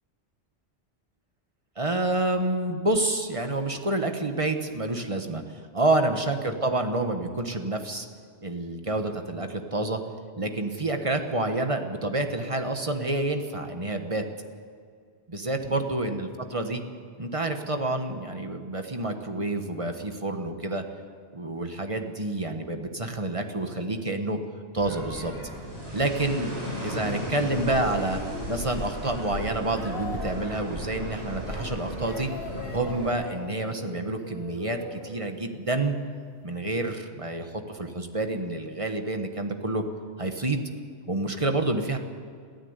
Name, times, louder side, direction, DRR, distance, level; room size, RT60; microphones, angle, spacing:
voice 1, 1.8-5.4 5.7-8.1 8.4-10.0 10.4-14.2 15.3-16.8 17.2-20.8 21.3-24.4 24.7-25.3 25.9-26.5 26.8-28.2 28.5-32.3 32.7-36.0 36.4-39.8 40.2-40.6 41.1-42.0, right 2 dB, 30° right, 6 dB, 1.4 m, -28 dB
sound 1, 24.8-33.1, equal, 60° right, 5.9 m, -35 dB
sound 2, 27.5-35.9 36.9-37.0, left 2 dB, 50° left, 2.3 m, -41 dB
22.0 x 14.5 x 8.2 m, 2.2 s
omnidirectional pair, 1.2 m